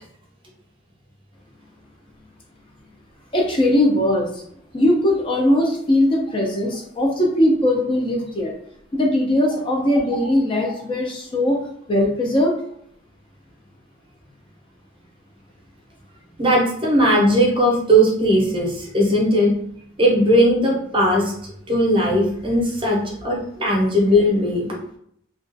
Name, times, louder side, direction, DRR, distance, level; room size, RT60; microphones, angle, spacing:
voice 1, 3.3-4.4 4.7-8.5 8.9-11.6 11.9-12.6, left 1 dB, 25° left, 0 dB, 0.4 m, -19 dB
voice 2, 16.4-19.5 20.0-21.3 21.7-24.7, equal, 25° right, -2 dB, 0.6 m, -18 dB
2.3 x 2.2 x 2.5 m, 0.68 s
head